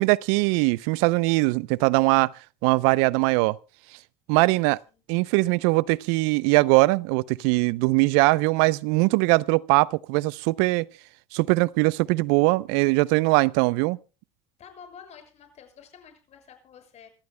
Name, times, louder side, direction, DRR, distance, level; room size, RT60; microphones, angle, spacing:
voice 1, 0.0-2.3 2.6-3.6 4.3-4.8 5.1-10.9 11.3-14.0, right 23 dB, 75° right, 0.6 m, -21 dB
voice 2, 14.6-17.1, left 7 dB, 50° left, 6.7 m, -49 dB
27.5 x 14.0 x 2.2 m
supercardioid pair, 90°, 14 cm